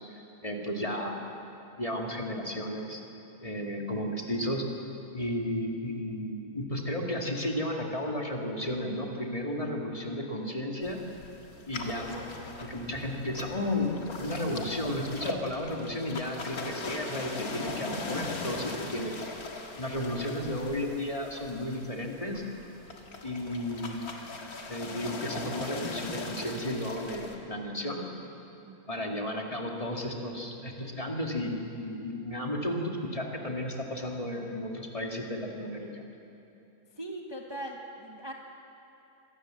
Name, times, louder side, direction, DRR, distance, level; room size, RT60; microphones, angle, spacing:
voice 1, 0.1-1.2 1.8-3.0 3.4-4.7 5.1-11.0 11.7-12.3 12.6-19.1 19.8-22.4 23.2-24.1 24.7-28.0 28.9-36.0, left 1 dB, 25° left, 1 dB, 2.3 m, -33 dB
sound 1, 10.8-27.4, left 3 dB, 80° left, 2.4 m, -40 dB
voice 2, 28.6-29.0 37.0-38.3, right 1 dB, 20° right, 1 dB, 1.2 m, -40 dB
25.0 x 18.0 x 7.7 m, 2.9 s
omnidirectional pair, 1.5 m